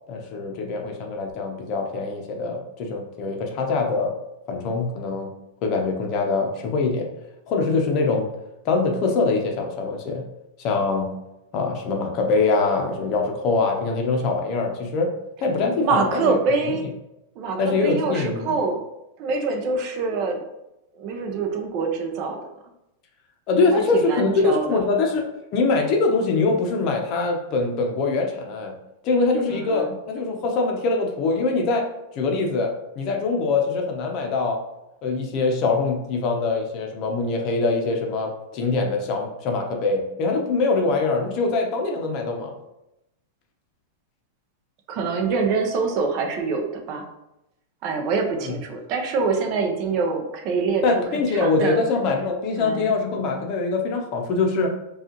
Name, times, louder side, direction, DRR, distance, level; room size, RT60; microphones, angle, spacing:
voice 1, 0.1-4.1 4.5-5.3 5.6-7.1 7.5-8.3 8.6-10.2 10.6-11.1 11.5-15.1 15.4-16.3 17.6-18.5 23.5-28.7 29.0-31.8 32.1-32.7 33.0-34.6 35.0-42.5 48.4-48.5 50.8-54.7, left 3 dB, 35° left, 2 dB, 0.7 m, -23 dB
voice 2, 15.8-16.9 17.3-18.8 19.2-20.4 20.9-22.4 23.7-24.9 29.5-29.9 44.9-47.1 47.8-50.8 51.1-51.8 52.6-52.9, right 4 dB, 40° right, 3 dB, 0.6 m, -25 dB
5.0 x 2.4 x 2.9 m, 0.89 s
supercardioid pair, 155°, 0 cm